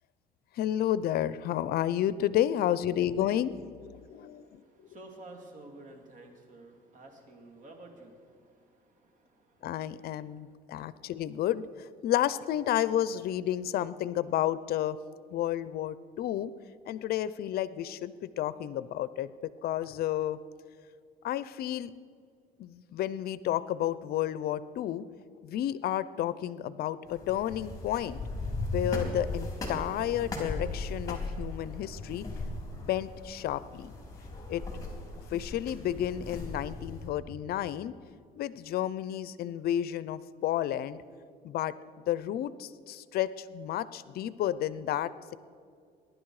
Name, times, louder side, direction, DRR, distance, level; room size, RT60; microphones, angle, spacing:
voice 1, 0.5-4.6 9.6-15.0 15.3-16.5 16.9-20.4 21.2-21.9 22.6-25.1 25.4-28.2 28.7-32.3 32.7-33.9 34.5-34.6 35.3-37.9 38.4-41.0 41.4-41.7 42.1-45.4, left 11 dB, 65° left, 17 dB, 0.5 m, -31 dB
voice 2, 4.0-10.6, right 2 dB, 50° right, 3 dB, 2.6 m, -52 dB
sound 1, 27.1-37.1, left 2 dB, 20° left, 4.0 m, -37 dB
21.0 x 11.0 x 4.8 m, 2.3 s
cardioid pair, 110°, 17 cm